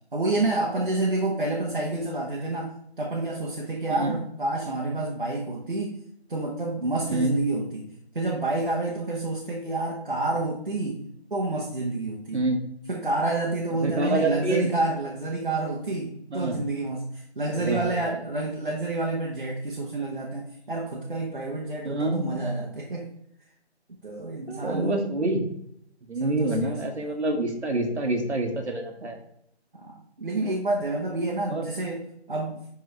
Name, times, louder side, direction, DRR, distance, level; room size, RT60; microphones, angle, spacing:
voice 1, 0.1-6.0 6.3-7.9 8.1-11.0 11.3-12.4 12.9-23.1 24.0-25.0 26.2-26.8 29.7-32.6, right 2 dB, 50° right, -2 dB, 1.1 m, -29 dB
voice 2, 13.8-14.7 16.3-16.6 17.5-18.0 21.8-22.3 24.5-25.5 26.1-29.2 31.5-31.7, right 2 dB, 80° right, 4 dB, 1.7 m, -27 dB
10.5 x 3.6 x 3.2 m, 0.70 s
figure-of-eight pair, 175°, 34 cm